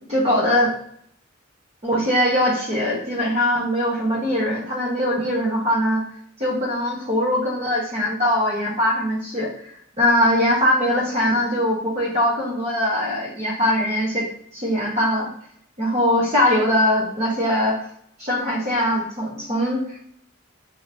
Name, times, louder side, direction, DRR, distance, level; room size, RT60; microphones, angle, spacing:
voice 1, 0.1-0.7 1.8-6.0 6.4-9.5 10.0-14.3 14.5-15.3 15.8-17.8 18.2-20.0, left 1 dB, 35° right, -5 dB, 1.0 m, -21 dB
4.5 x 2.8 x 2.7 m, 0.65 s
head